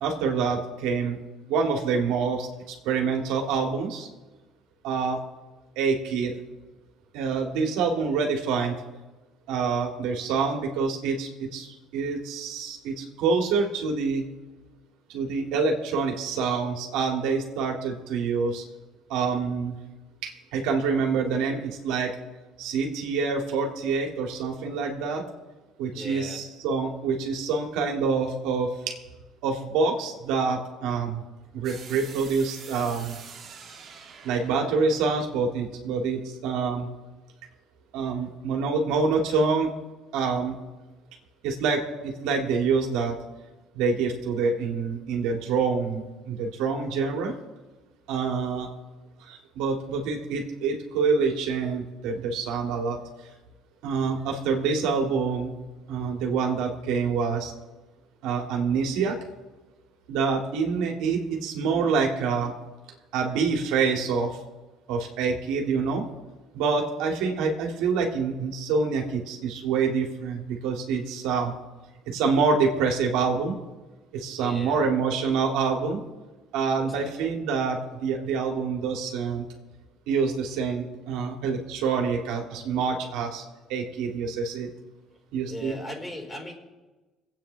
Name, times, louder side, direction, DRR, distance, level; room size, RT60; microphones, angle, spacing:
voice 1, 0.0-1.2 1.5-4.1 4.8-5.2 5.8-6.3 7.1-8.8 9.5-14.3 15.1-18.6 19.1-19.8 20.2-22.1 22.6-25.2 25.8-29.0 29.4-31.2 31.5-33.2 34.2-36.9 37.9-39.7 40.1-40.5 41.4-43.2 43.7-47.3 48.1-48.7 49.2-53.0 53.8-55.5 55.9-57.5 58.2-59.2 60.1-62.5 63.1-64.4 64.9-66.1 66.5-71.5 72.1-73.5 74.1-76.0 76.5-79.4 80.1-83.4 83.7-84.7 85.3-85.7, right 5 dB, 80° right, 2 dB, 2.2 m, -26 dB
voice 2, 25.9-26.5 74.3-74.9 76.9-77.3 85.5-86.5, left 1 dB, 15° left, 1 dB, 4.3 m, -38 dB
sound 1, 31.6-36.5, right 6 dB, 50° right, 2.3 m, -46 dB
26.0 x 8.9 x 3.4 m, 1.2 s
supercardioid pair, 80°, 0 cm